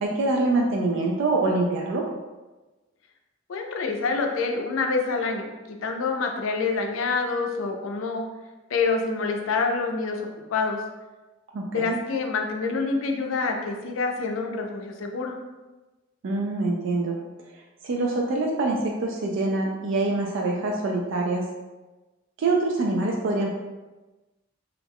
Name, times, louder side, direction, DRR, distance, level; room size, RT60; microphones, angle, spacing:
voice 1, 0.0-2.1 11.5-12.0 16.2-17.2 17.8-21.4 22.4-23.5, right 2 dB, 65° right, -1 dB, 0.3 m, -25 dB
voice 2, 3.5-8.3 8.7-10.8 11.7-15.4, left 4 dB, 90° left, 3 dB, 0.4 m, -27 dB
2.4 x 2.1 x 3.3 m, 1.2 s
head